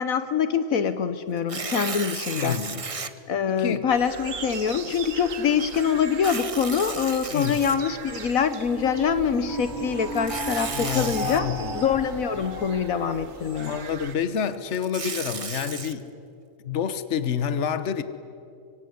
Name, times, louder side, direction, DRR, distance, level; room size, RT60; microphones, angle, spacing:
voice 1, 0.0-2.6 3.3-11.5 11.7-13.8, left 7 dB, 75° left, 12 dB, 1.4 m, -25 dB
Tearing, 1.4-3.1 3.8-3.9 6.1-8.2 10.1-11.4 14.5-15.9, right 4 dB, 30° right, 0.9 m, -34 dB
voice 2, 2.4-2.8 3.5-3.9 7.3-7.6 10.7-11.7 13.6-16.1 16.6-18.0, left 7 dB, 55° left, 12 dB, 1.4 m, -28 dB
sound 1, 3.9-14.2, right 6 dB, 65° right, 1.6 m, -40 dB
sound 2, 8.6-13.7, equal, 15° left, 3.6 m, -34 dB
25.0 x 24.5 x 9.5 m, 2.5 s
omnidirectional pair, 1.5 m